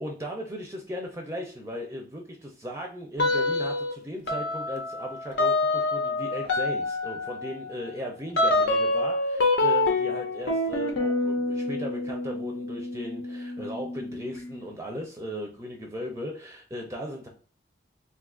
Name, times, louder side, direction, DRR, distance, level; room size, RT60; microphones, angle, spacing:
voice 1, 0.0-17.3, equal, 15° right, 1 dB, 0.4 m, -37 dB
sound 1, 3.2-3.9 4.3-14.6, left 2 dB, 85° left, 0.7 m, -27 dB
2.6 x 2.4 x 3.6 m, 0.40 s
head